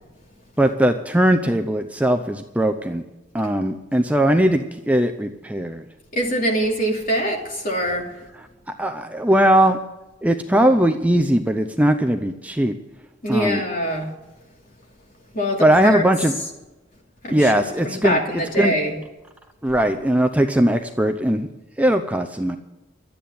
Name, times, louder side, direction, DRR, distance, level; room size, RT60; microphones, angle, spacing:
voice 1, 0.6-3.0 3.3-5.8 8.7-9.8 10.2-12.7 13.3-13.6 15.6-16.3 17.3-18.7 19.6-21.5 21.8-22.6, right 1 dB, 10° right, 6 dB, 0.6 m, -19 dB
voice 2, 6.1-8.1 13.2-14.1 15.3-16.0 17.2-18.9, equal, 45° left, 1 dB, 2.8 m, -23 dB
12.5 x 8.6 x 9.4 m, 1.0 s
head